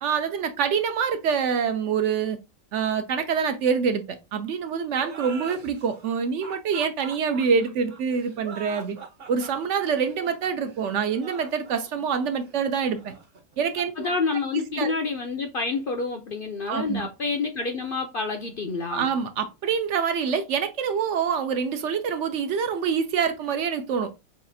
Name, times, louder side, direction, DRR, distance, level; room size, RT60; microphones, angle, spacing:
voice 1, 0.0-2.4 2.7-9.0 9.3-13.1 13.6-14.1 14.8-14.9 16.7-17.1 18.9-24.1, right 6 dB, 65° right, 0.8 m, -26 dB
sound 1, 5.0-14.3, right 5 dB, 45° right, 1.1 m, -43 dB
voice 2, 14.0-19.1, left 4 dB, 60° left, 0.5 m, -28 dB
6.4 x 2.4 x 2.6 m
omnidirectional pair, 1.5 m